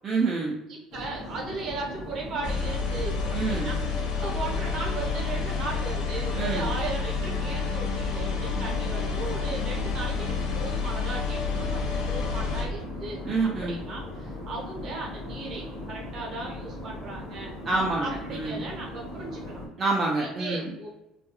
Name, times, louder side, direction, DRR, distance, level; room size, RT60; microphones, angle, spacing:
voice 1, 0.0-0.6 3.3-3.7 6.3-6.7 13.2-13.8 17.6-18.6 19.8-20.7, right 3 dB, 25° right, -4 dB, 0.4 m, -27 dB
voice 2, 0.7-11.8 12.1-13.2 13.6-17.5 18.0-19.6 20.2-20.9, right 3 dB, 45° right, -2 dB, 0.8 m, -37 dB
sound 1, 0.9-19.7, left 1 dB, 40° left, 0.8 m, -39 dB
sound 2, 2.4-12.6, left 5 dB, 65° left, 0.5 m, -29 dB
2.3 x 2.2 x 2.8 m, 0.90 s
cardioid pair, 160°, 0 cm